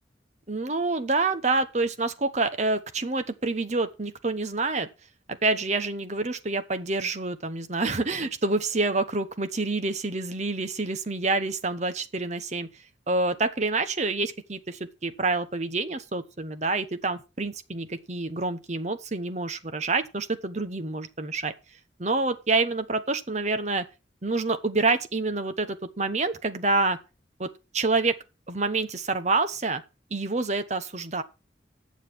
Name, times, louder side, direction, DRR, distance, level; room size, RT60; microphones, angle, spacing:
voice 1, 0.5-4.9 5.4-12.7 13.1-21.5 22.0-23.8 24.2-27.0 27.4-27.5 27.7-28.2 28.5-29.8 30.1-31.2, right 3 dB, 40° right, 1.0 m, -27 dB
9.1 x 7.3 x 6.1 m
head